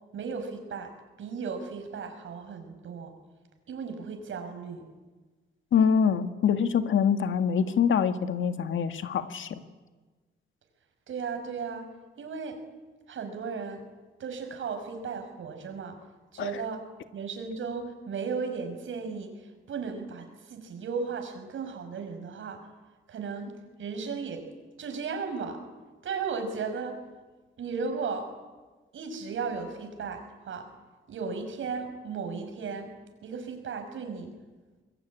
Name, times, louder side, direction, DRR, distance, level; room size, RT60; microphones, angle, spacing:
voice 1, 0.1-0.9 1.2-3.1 3.7-4.8 11.1-11.9 12.2-12.6 13.1-13.9 14.2-16.0 16.3-16.8 17.1-19.3 19.7-22.7 23.1-24.4 24.8-25.6 26.0-27.0 27.6-28.3 28.9-30.7 31.1-32.9 33.2-34.3, right 5 dB, 85° right, 6 dB, 5.8 m, -35 dB
voice 2, 5.7-9.6 16.4-16.5, left 7 dB, 80° left, 8 dB, 1.8 m, -25 dB
25.5 x 22.0 x 9.8 m, 1.3 s
wide cardioid pair, 135°, 20 cm